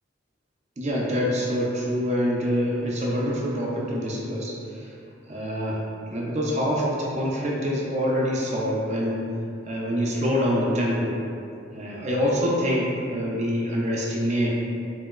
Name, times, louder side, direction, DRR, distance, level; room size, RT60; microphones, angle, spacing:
voice 1, 0.8-4.9 5.3-5.8 6.1-9.2 9.7-11.2 11.7-14.5, equal, 40° right, -4 dB, 0.4 m, -25 dB
2.9 x 2.7 x 2.3 m, 2.6 s
head